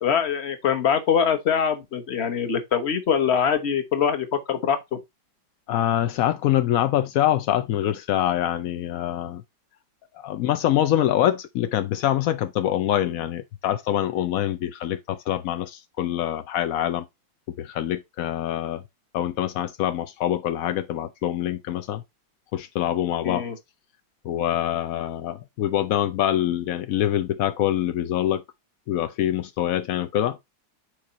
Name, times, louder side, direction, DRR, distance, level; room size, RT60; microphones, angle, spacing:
voice 1, 0.0-5.0 23.2-23.5, left 7 dB, 40° left, 1.2 m, -23 dB
voice 2, 5.7-9.4 10.1-17.0 17.6-18.8 19.1-22.0 22.5-23.4 24.2-28.4 28.9-30.4, left 12 dB, 80° left, 0.7 m, -25 dB
6.8 x 4.5 x 4.1 m
omnidirectional pair, 2.1 m